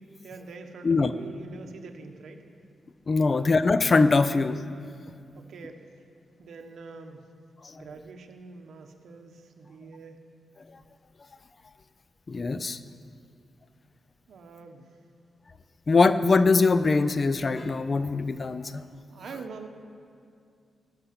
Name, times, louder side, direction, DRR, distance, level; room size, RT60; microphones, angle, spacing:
voice 1, 0.2-2.5 3.2-3.5 5.3-5.9 6.4-7.3 7.8-10.2 14.3-15.0 18.7-18.8 19.1-19.7, right 4 dB, 70° right, 4 dB, 1.3 m, -45 dB
voice 2, 3.1-4.6 12.3-12.8 15.9-18.8, left 3 dB, 35° left, 12 dB, 0.5 m, -22 dB
16.0 x 6.8 x 9.8 m, 2.4 s
wide cardioid pair, 135°, 0 cm